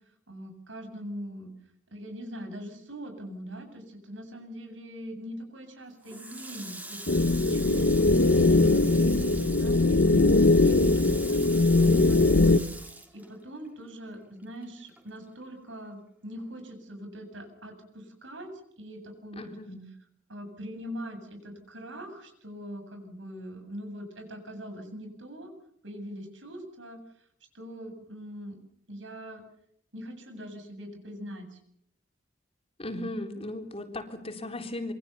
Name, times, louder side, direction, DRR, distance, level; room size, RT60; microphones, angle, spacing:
voice 1, 0.3-1.5 1.9-19.5 20.3-25.5 25.8-27.0 27.5-28.6 28.9-29.4 29.9-31.6, equal, 80° right, 6 dB, 7.9 m, -42 dB
Water tap faucet, 6.0-13.9 14.2-15.5, right 2 dB, 10° right, 3.6 m, -42 dB
sound 1, 7.1-12.6, left 2 dB, 65° left, 1.1 m, -21 dB
voice 2, 19.3-19.9 32.8-34.9, left 1 dB, 30° left, 5 dB, 3.8 m, -37 dB
27.0 x 24.0 x 7.0 m, 0.69 s
head